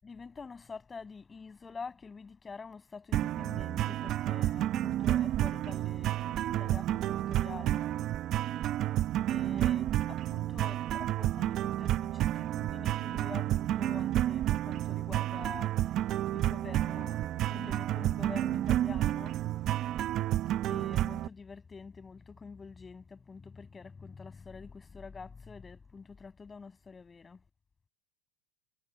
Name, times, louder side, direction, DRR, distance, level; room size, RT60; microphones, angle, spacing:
voice 1, 0.0-7.9 9.3-15.7 16.3-19.4 20.7-27.4, left 5 dB, 15° left, 7.7 m, -47 dB
sound 1, 3.1-21.3, right 13 dB, 40° right, 0.9 m, -30 dB
supercardioid pair, 125°, 0 cm